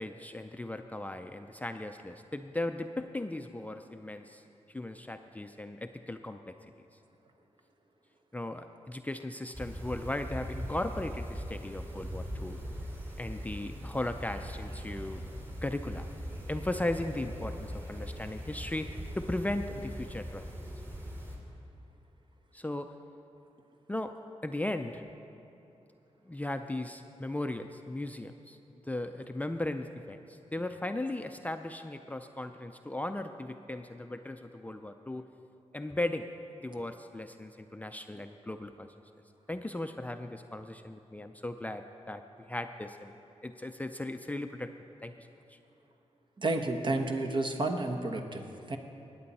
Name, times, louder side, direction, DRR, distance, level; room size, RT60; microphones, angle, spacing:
voice 1, 0.0-4.4 4.7-6.5 8.3-12.6 13.2-15.2 15.6-16.1 16.5-20.4 22.5-22.9 23.9-24.1 24.4-25.0 26.3-28.6 28.9-35.3 35.7-36.3 36.6-38.9 39.5-42.2 42.5-43.1 43.4-44.7 45.0-45.6, left 1 dB, 15° left, 7 dB, 0.4 m, -37 dB
sound 1, 9.5-21.4, equal, 25° right, 2.8 m, -40 dB
voice 2, 46.4-48.8, right 2 dB, 45° right, 4 dB, 1.1 m, -31 dB
19.5 x 8.7 x 4.2 m, 2.9 s
cardioid pair, 80°, 11 cm